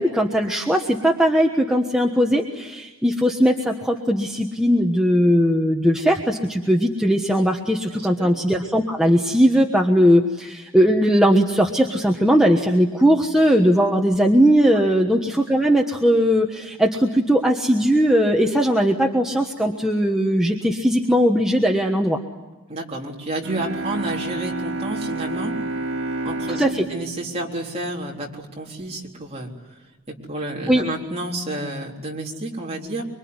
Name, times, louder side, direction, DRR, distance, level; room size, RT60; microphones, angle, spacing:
voice 1, 0.0-22.2 26.5-26.8 30.7-30.8, equal, ahead, 1 dB, 1.3 m, -19 dB
voice 2, 22.7-25.5 26.2-26.6 26.9-29.5 30.1-33.1, right 1 dB, 30° right, -2 dB, 3.8 m, -30 dB
Bowed string instrument, 23.4-28.6, right 2 dB, 60° right, 2.6 m, -30 dB
25.0 x 24.5 x 9.7 m, 1.1 s
head